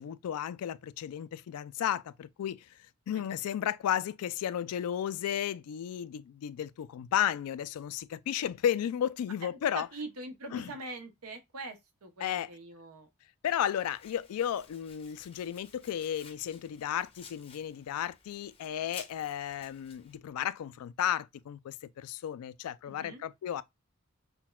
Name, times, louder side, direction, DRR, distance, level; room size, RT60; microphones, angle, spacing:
voice 1, 0.0-9.9 10.5-10.7 12.2-12.5 13.4-23.6, left 10 dB, 90° left, 0.3 m, -33 dB
voice 2, 9.7-13.1 22.9-23.2, right 2 dB, 85° right, 0.8 m, -43 dB
Domestic sounds home sounds, 13.8-20.2, left 6 dB, 25° left, 0.5 m, -54 dB
5.8 x 2.2 x 2.2 m
head